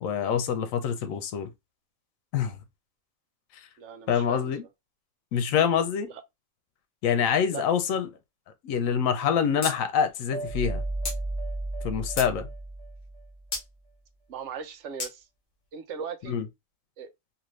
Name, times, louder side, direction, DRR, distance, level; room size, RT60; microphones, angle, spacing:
voice 1, 0.0-1.5 2.3-2.6 4.1-4.6 5.3-6.1 7.0-8.1 8.6-10.8 11.8-12.5 16.3-16.5, left 7 dB, 80° left, 1.0 m, -26 dB
voice 2, 3.8-4.5 6.1-6.2 7.5-7.6 14.3-15.3 15.7-16.4 17.0-17.1, right 7 dB, 70° right, 0.9 m, -38 dB
sound 1, 9.6-9.8 10.1-10.2 11.0-11.2 11.8-12.3 13.5-13.7 15.0-15.1, left 3 dB, 45° left, 1.0 m, -32 dB
sound 2, 10.3-13.5, right 2 dB, 5° left, 0.3 m, -34 dB
2.8 x 2.6 x 3.0 m
omnidirectional pair, 1.4 m